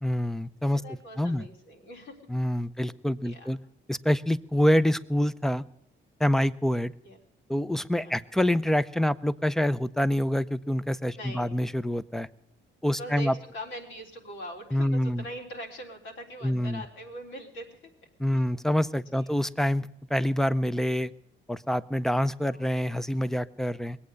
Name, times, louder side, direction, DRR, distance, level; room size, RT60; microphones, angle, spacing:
voice 1, 0.0-0.8 1.2-1.5 2.3-3.6 3.9-5.6 6.2-6.9 7.5-12.3 12.8-13.3 14.7-15.2 16.4-16.8 18.2-21.1 21.5-24.0, equal, ahead, 16 dB, 0.6 m, -26 dB
voice 2, 0.8-2.2 3.2-3.5 7.0-7.2 8.0-8.2 11.1-11.6 12.8-17.9 18.3-18.4 19.1-19.3 22.4-22.6, equal, 80° left, 0 dB, 3.7 m, -42 dB
20.5 x 8.6 x 6.4 m, 0.79 s
cardioid pair, 90°, 20 cm